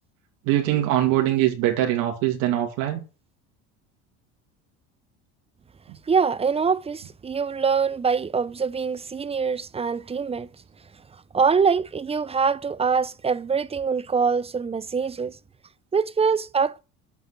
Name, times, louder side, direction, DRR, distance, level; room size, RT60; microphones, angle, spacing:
voice 1, 0.5-3.0, right 13 dB, 75° right, 2.5 m, -22 dB
voice 2, 6.1-10.5 11.3-15.4 15.9-16.8, right 5 dB, 15° right, 0.6 m, -24 dB
9.2 x 8.2 x 8.1 m
cardioid pair, 115°, 34 cm